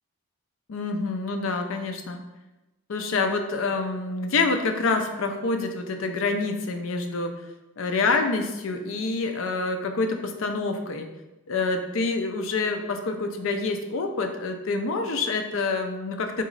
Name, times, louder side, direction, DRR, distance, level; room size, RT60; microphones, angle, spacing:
voice 1, 0.7-2.2 2.9-7.3 7.8-11.1 11.5-16.4, left 3 dB, 70° left, 5 dB, 0.5 m, -27 dB
3.9 x 3.0 x 3.8 m, 1.0 s
head